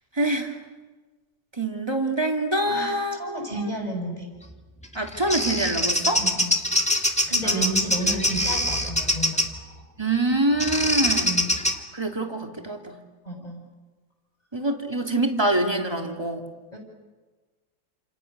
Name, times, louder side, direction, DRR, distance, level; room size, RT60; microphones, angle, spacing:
voice 1, 0.2-0.5 1.6-3.5 4.9-6.2 7.4-7.7 10.0-11.3 11.9-13.0 14.5-16.5, right 2 dB, 10° right, 3 dB, 2.6 m, -25 dB
voice 2, 2.6-4.3 6.1-6.6 7.2-9.4 11.2-11.5 13.2-13.6 16.7-16.8, right 1 dB, 20° left, 2 dB, 7.0 m, -31 dB
Bird vocalization bird call bird song, 4.8-9.6 10.6-11.8, left 1 dB, 5° left, 1.8 m, -24 dB
29.5 x 28.0 x 6.8 m, 1.3 s
omnidirectional pair, 2.2 m